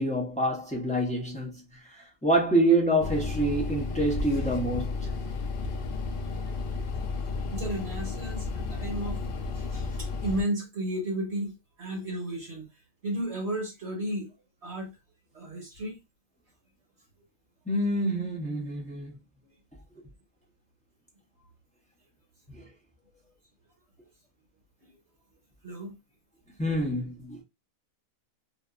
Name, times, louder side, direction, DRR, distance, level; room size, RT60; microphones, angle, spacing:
voice 1, 0.0-1.6 2.2-5.1 17.7-19.2 22.5-22.7 26.6-27.4, right 1 dB, 10° left, 0.4 m, -26 dB
sound 1, 3.0-10.4, left 3 dB, 85° left, 0.4 m, -33 dB
voice 2, 7.5-9.2 9.5-12.6 13.0-14.3 14.6-14.9 15.3-16.0 19.4-19.5 24.8-25.0 25.6-26.0, right 1 dB, 55° right, 1.1 m, -33 dB
2.6 x 2.5 x 2.3 m
omnidirectional pair, 1.5 m